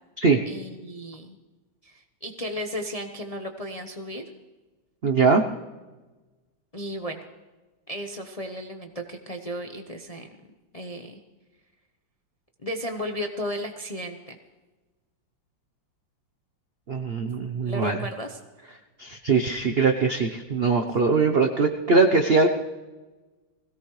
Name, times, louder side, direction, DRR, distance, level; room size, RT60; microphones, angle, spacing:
voice 1, 0.5-1.4 1.8-4.2 6.7-7.2 7.9-10.3 10.7-11.2 12.6-14.4 17.6-18.4, equal, 30° left, 4 dB, 0.6 m, -34 dB
voice 2, 5.0-5.4 16.9-18.0 19.0-22.5, right 4 dB, 60° right, 6 dB, 0.6 m, -21 dB
21.0 x 17.0 x 3.2 m, 1.2 s
omnidirectional pair, 2.2 m